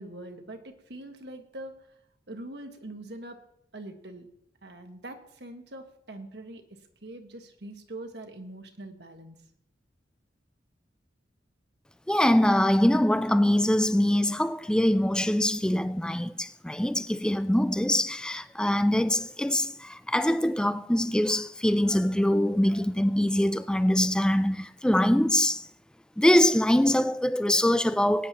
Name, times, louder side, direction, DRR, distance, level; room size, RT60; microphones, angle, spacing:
voice 1, 0.0-1.7 2.3-3.4 3.7-4.3 4.6-9.4, right 1 dB, 65° right, 1.4 m, -43 dB
voice 2, 12.1-25.7 26.2-28.3, left 1 dB, 5° left, 0.3 m, -23 dB
20.5 x 9.8 x 2.9 m
head